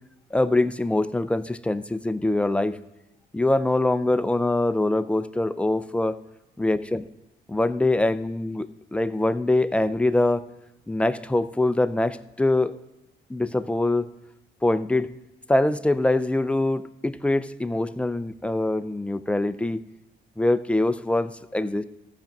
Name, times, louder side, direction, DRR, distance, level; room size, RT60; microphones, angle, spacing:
voice 1, 0.3-2.8 3.3-6.2 6.6-7.1 7.5-10.5 10.9-12.7 13.3-14.1 14.6-15.1 15.5-19.8 20.4-21.8, left 2 dB, 5° left, 12 dB, 0.5 m, -23 dB
14.0 x 5.3 x 5.9 m, 1.0 s
cardioid pair, 90°, 20 cm